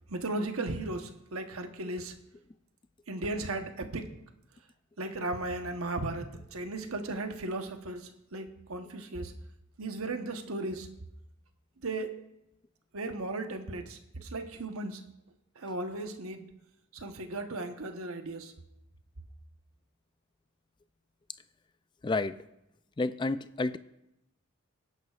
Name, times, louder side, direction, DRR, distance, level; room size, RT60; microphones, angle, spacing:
voice 1, 0.1-2.2 3.1-4.1 5.0-9.3 9.8-10.9 11.8-12.1 12.9-15.0 15.5-16.5 16.9-18.5, right 2 dB, 85° right, 6 dB, 1.1 m, -36 dB
voice 2, 22.0-22.5 23.0-23.8, left 3 dB, 20° left, 13 dB, 0.3 m, -30 dB
19.5 x 11.0 x 2.5 m, 0.88 s
head